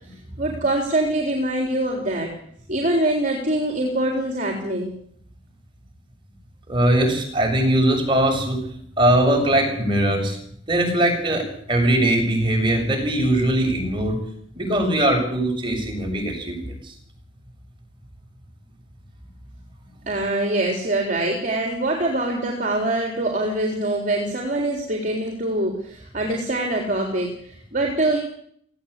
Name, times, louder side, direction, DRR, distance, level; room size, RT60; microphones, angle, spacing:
voice 1, 0.4-2.3 2.7-4.9 20.1-28.2, right 1 dB, 40° right, 1 dB, 3.8 m, -24 dB
voice 2, 6.7-8.6 9.0-10.4 10.7-14.2 14.5-16.8, right 1 dB, 25° right, 3 dB, 7.3 m, -20 dB
18.5 x 16.5 x 8.5 m, 0.64 s
head